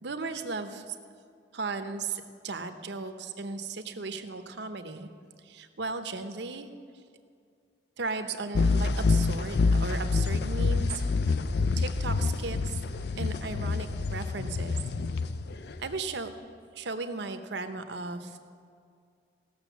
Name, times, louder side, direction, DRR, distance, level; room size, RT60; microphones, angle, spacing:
voice 1, 0.0-1.0 1.5-5.1 5.4-6.7 8.0-11.1 11.8-12.8 13.2-14.8 15.8-16.3 16.7-18.4, right 3 dB, 65° right, 8 dB, 0.8 m, -36 dB
sound 1, 8.5-16.0, left 4 dB, 60° left, 0.4 m, -27 dB
16.0 x 6.4 x 7.1 m, 2.3 s
head